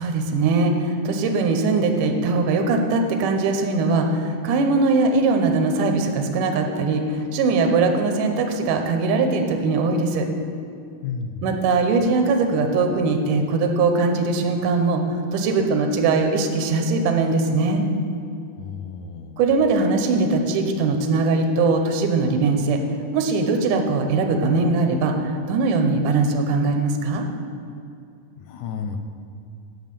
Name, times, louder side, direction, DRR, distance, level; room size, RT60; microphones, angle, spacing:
voice 1, 0.0-10.3 11.4-17.8 19.4-22.8 23.1-27.3, right 3 dB, 75° right, 4 dB, 2.3 m, -21 dB
voice 2, 11.0-11.6 18.6-19.4 28.4-29.0, left 6 dB, 80° left, 6 dB, 1.9 m, -32 dB
8.4 x 7.9 x 6.8 m, 2.5 s
omnidirectional pair, 4.0 m